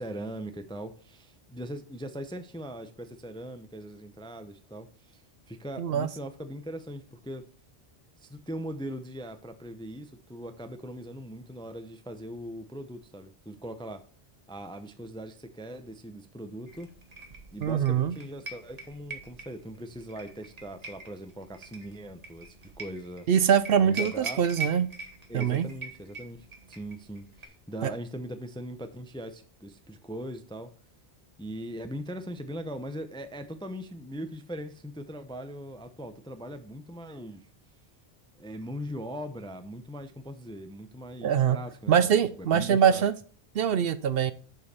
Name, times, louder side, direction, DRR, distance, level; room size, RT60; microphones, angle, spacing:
voice 1, 0.0-5.2 5.5-7.5 8.2-14.1 14.5-16.9 17.5-23.3 23.8-24.4 25.3-30.7 31.4-37.5 38.4-43.0, equal, 5° left, 9 dB, 0.4 m, -40 dB
sound 1, 16.7-27.5, right 2 dB, 35° right, 1.3 m, -43 dB
voice 2, 17.6-18.1 23.3-24.9 25.3-25.7 27.8-27.9 41.2-41.6 41.9-43.1 43.5-44.3, right 8 dB, 65° right, 13 dB, 0.7 m, -23 dB
6.8 x 5.3 x 4.2 m, 0.42 s
omnidirectional pair, 1.1 m